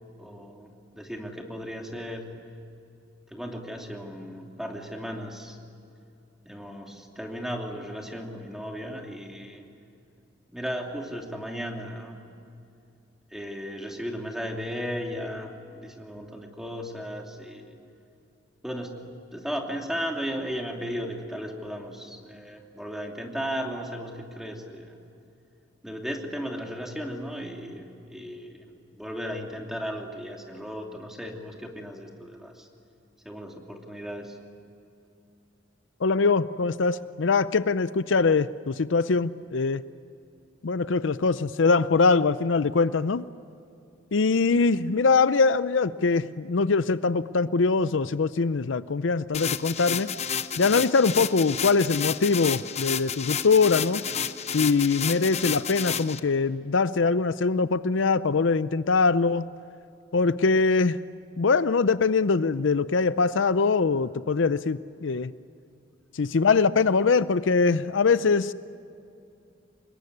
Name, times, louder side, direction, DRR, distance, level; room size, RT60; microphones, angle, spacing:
voice 1, 0.2-2.3 3.3-5.6 6.4-9.6 10.5-12.2 13.3-17.8 18.6-19.0 19.3-25.0 25.8-32.7 33.2-34.4, equal, ahead, 1 dB, 2.8 m, -35 dB
voice 2, 36.0-39.8 40.6-43.3 44.1-50.1 50.6-54.0 54.5-59.4 60.1-61.0 61.4-65.3 66.1-68.5, left 4 dB, 75° left, 15 dB, 0.6 m, -23 dB
sound 1, 49.3-56.2, left 8 dB, 35° left, 0.8 m, -31 dB
26.0 x 21.5 x 9.8 m, 2.6 s
head